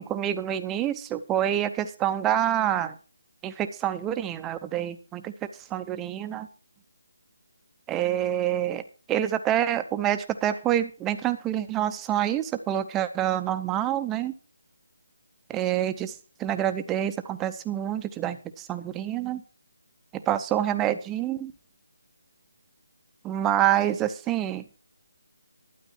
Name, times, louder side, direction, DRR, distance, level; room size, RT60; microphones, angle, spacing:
voice 1, 0.0-2.9 3.4-5.3 5.7-6.5 7.9-8.8 9.1-14.3 15.5-19.4 20.1-21.5 23.2-24.6, right 11 dB, 10° right, 10 dB, 0.6 m, -27 dB
12.5 x 9.3 x 4.3 m, 0.36 s
figure-of-eight pair, 165°, 0 cm